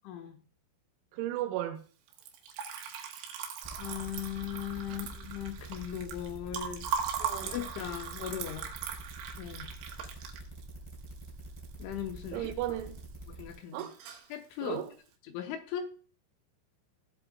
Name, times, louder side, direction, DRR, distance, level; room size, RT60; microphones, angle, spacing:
voice 1, 0.0-0.4 3.8-6.9 7.4-8.7 9.4-9.7 11.8-12.5 13.3-13.9 14.3-14.8 15.2-15.9, left 10 dB, 75° left, 3.1 m, -38 dB
voice 2, 1.1-1.8 4.9-5.0 7.2-7.5 12.3-13.0 13.7-14.0 14.6-14.9, right 13 dB, 90° right, 3.8 m, -35 dB
Liquid, 2.1-12.3 12.6-13.3 13.5-14.3, right 8 dB, 75° right, 3.3 m, -39 dB
sound 1, 3.6-13.5, right 2 dB, 5° right, 2.0 m, -46 dB
17.0 x 7.7 x 2.3 m
omnidirectional pair, 6.0 m